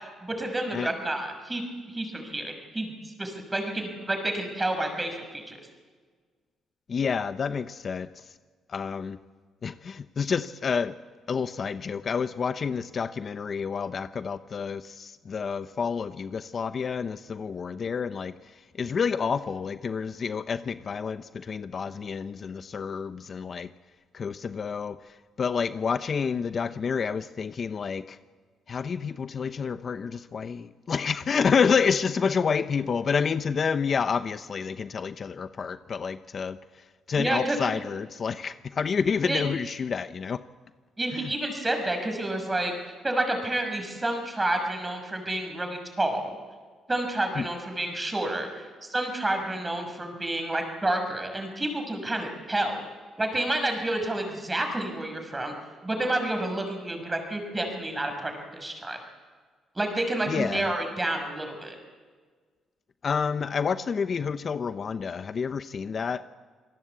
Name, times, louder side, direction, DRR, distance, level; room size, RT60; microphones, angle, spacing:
voice 1, 0.2-1.6 1.9-5.6 37.2-37.6 39.2-39.4 41.0-42.7 43.0-46.3 46.9-52.8 53.2-55.5 55.8-59.0 59.7-61.8, right 1 dB, 15° right, 5 dB, 6.1 m, -29 dB
voice 2, 6.9-8.3 8.7-9.2 9.6-11.0 11.3-23.7 24.1-28.2 28.7-40.4 41.1-41.3 47.4-47.5 60.3-60.7 63.0-66.2, left 6 dB, 45° left, 11 dB, 0.8 m, -29 dB
27.0 x 19.0 x 8.3 m, 1.5 s
cardioid pair, 90°, 0 cm